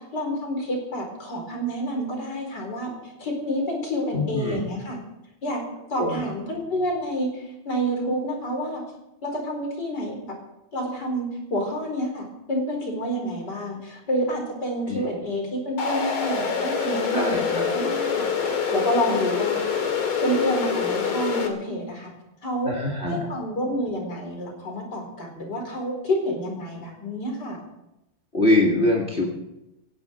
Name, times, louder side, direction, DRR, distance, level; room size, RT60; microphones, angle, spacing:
voice 1, 0.0-5.0 5.4-5.6 5.9-8.8 9.2-10.2 10.7-19.6 20.2-22.1 22.4-22.7 23.1-27.6, equal, 50° left, 2 dB, 5.0 m, -28 dB
voice 2, 4.1-4.6 6.0-6.2 14.9-15.1 17.1-17.6 22.6-23.3 28.3-29.2, left 2 dB, 30° left, -2 dB, 2.5 m, -23 dB
sound 1, 15.8-21.5, left 6 dB, 75° left, 2.9 m, -25 dB
17.5 x 17.0 x 4.6 m, 0.92 s
omnidirectional pair, 2.3 m